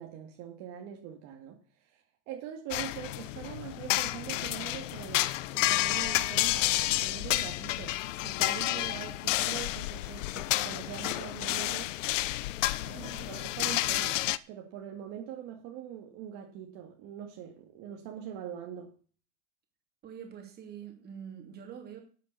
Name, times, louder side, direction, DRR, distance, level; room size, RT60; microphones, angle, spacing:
voice 1, 0.0-5.2 5.5-11.9 12.8-18.9, right 9 dB, 45° right, 2 dB, 2.2 m, -43 dB
sound 1, 2.7-14.4, left 16 dB, 70° left, 0.8 m, -30 dB
voice 2, 12.9-13.3 20.0-22.0, right 8 dB, 25° right, 3 dB, 3.0 m, -45 dB
11.5 x 7.4 x 6.9 m, 0.41 s
supercardioid pair, 150°, 39 cm